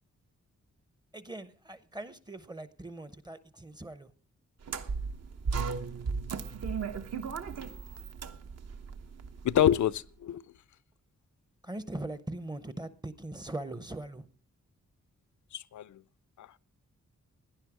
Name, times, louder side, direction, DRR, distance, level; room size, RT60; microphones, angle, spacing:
voice 1, 1.1-4.1 11.6-14.3, right 2 dB, 15° right, 0.7 m, -41 dB
sound 1, 4.6-9.9, right 5 dB, 60° right, 1.0 m, -36 dB
voice 2, 9.4-10.4 15.5-16.0 16.4-16.5, left 11 dB, 80° left, 0.6 m, -27 dB
17.0 x 10.5 x 4.8 m
wide cardioid pair, 175°, 29 cm